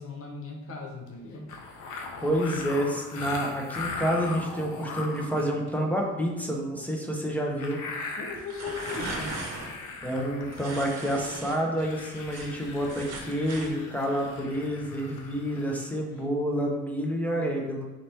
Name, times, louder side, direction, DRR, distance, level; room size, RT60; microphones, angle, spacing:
voice 1, 0.0-1.5 8.1-9.4, left 4 dB, 45° left, 2 dB, 0.8 m, -38 dB
sound 1, 1.1-1.2 1.5-5.7 7.6-11.1 11.4-11.5 11.8-15.9, left 4 dB, 80° left, 0.7 m, -39 dB
voice 2, 2.2-7.8 10.0-17.8, equal, 5° left, -1 dB, 0.7 m, -29 dB
sound 2, 8.3-9.7 10.5-11.6 11.9-13.7, right 3 dB, 60° right, 0.8 m, -38 dB
4.0 x 3.0 x 3.3 m, 1.1 s
cardioid pair, 90°, 30 cm